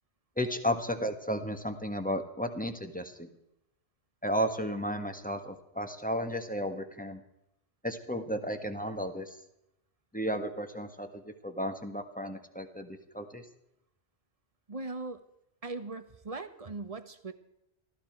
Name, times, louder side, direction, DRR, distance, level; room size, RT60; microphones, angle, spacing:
voice 1, 0.4-3.3 4.2-7.2 7.8-9.4 10.1-13.4, equal, 5° left, 7 dB, 1.5 m, -33 dB
voice 2, 14.7-15.2 15.6-17.3, right 3 dB, 35° right, 10 dB, 1.3 m, -39 dB
19.5 x 14.5 x 4.6 m, 0.83 s
omnidirectional pair, 1.2 m